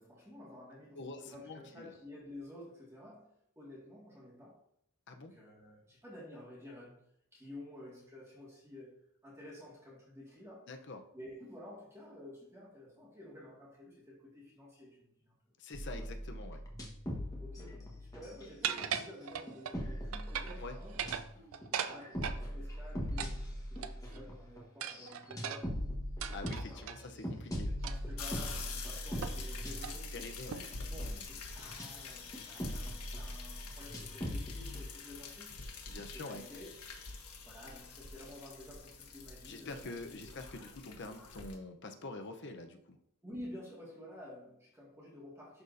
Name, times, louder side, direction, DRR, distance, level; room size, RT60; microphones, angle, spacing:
voice 1, 0.0-4.6 5.1-7.0 7.3-9.0 9.2-10.7 11.1-15.3 17.4-21.0 21.3-21.4 21.7-25.8 26.6-27.4 27.8-30.1 30.9-40.3 43.2-45.6, left 1 dB, 10° right, -6 dB, 1.9 m, -51 dB
voice 2, 0.9-1.9 5.1-5.3 10.7-11.0 15.6-16.6 20.5-20.8 26.3-27.8 30.1-30.6 31.0-31.2 35.9-36.4 39.4-43.0, left 2 dB, 55° left, 5 dB, 0.7 m, -46 dB
sound 1, 15.7-19.0 19.5-31.9 32.3-34.8, equal, 15° left, 1.2 m, -41 dB
sound 2, 18.6-19.8 20.1-20.6 20.9-22.4 23.2-24.2 24.8-27.0 27.8-28.1 28.5-28.6 29.2-29.5 29.8-30.0 30.5-30.8, right 8 dB, 70° right, 0.4 m, -39 dB
sound 3, 28.2-41.5, left 4 dB, 85° left, 1.3 m, -46 dB
11.5 x 4.1 x 2.7 m, 0.72 s
head